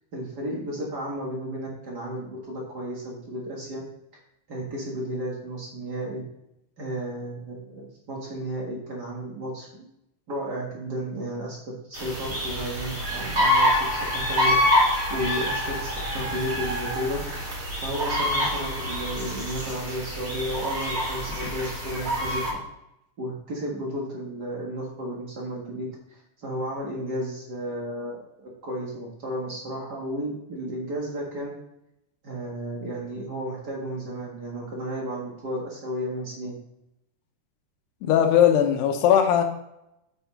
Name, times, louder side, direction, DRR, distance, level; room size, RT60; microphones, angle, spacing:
voice 1, 0.1-3.8 4.5-6.2 6.8-9.9 10.3-14.6 15.1-17.2 17.8-22.4 23.2-31.5 32.2-36.6, right 1 dB, 65° right, -3 dB, 1.0 m, -33 dB
sound 1, 11.9-22.5, left 1 dB, 25° right, 2.2 m, -26 dB
voice 2, 38.0-39.4, left 9 dB, 85° left, 5 dB, 3.0 m, -19 dB
8.0 x 5.6 x 4.1 m, 0.84 s
omnidirectional pair, 4.6 m